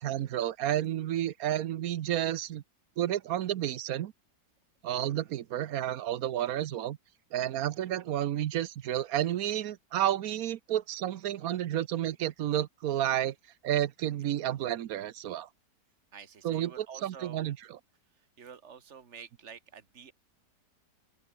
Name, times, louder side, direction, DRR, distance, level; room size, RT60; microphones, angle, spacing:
voice 1, 0.0-2.6 3.0-4.1 4.8-7.0 7.3-13.3 13.6-15.5 16.4-17.6, right 11 dB, 65° right, 1.1 m, -31 dB
voice 2, 16.1-17.6 18.1-20.1, right 7 dB, 40° right, 2.1 m, -49 dB
open air
omnidirectional pair, 1.9 m